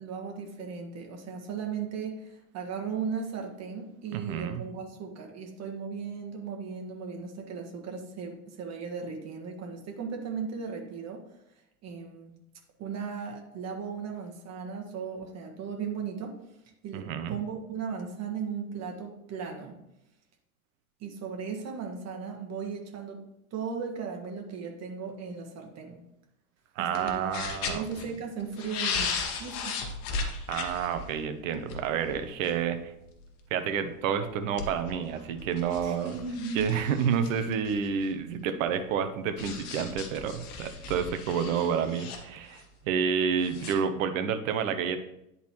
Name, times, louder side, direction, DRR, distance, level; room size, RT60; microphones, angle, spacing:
voice 1, 0.0-11.2 11.8-12.4 12.8-16.4 16.8-19.8 21.0-26.0 26.8-27.3 27.7-29.1 29.4-29.8 35.8-36.7, right 6 dB, 35° right, 2 dB, 1.6 m, -37 dB
voice 2, 4.1-4.6 16.9-17.4 26.8-27.8 30.5-32.9 33.5-36.2 36.5-45.0, right 7 dB, 60° right, 9 dB, 0.9 m, -29 dB
sound 1, 26.9-28.1 28.4-32.7 33.1-33.2 34.2-38.0 39.4-42.6 43.4-43.7, left 4 dB, 50° left, 1.3 m, -36 dB
10.5 x 4.1 x 3.0 m, 0.84 s
hypercardioid pair, 85°, 44 cm